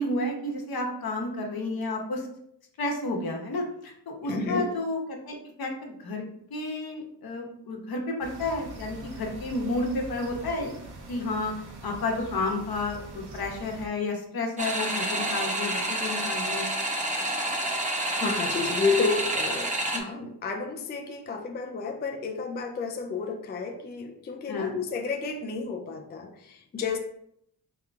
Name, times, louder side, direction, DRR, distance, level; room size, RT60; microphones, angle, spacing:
voice 1, 0.0-2.3 2.8-6.2 6.5-10.7 11.1-11.5 11.8-16.7 24.5-24.8, left 2 dB, 65° left, 1 dB, 1.0 m, -31 dB
voice 2, 4.2-4.7 18.2-27.0, left 4 dB, 30° left, 4 dB, 0.3 m, -31 dB
sound 1, 8.2-13.9, right 2 dB, 80° right, 0.9 m, -43 dB
sound 2, 14.6-20.0, right 1 dB, 20° right, 0.7 m, -29 dB
3.6 x 2.9 x 3.5 m, 0.73 s
wide cardioid pair, 110°, 39 cm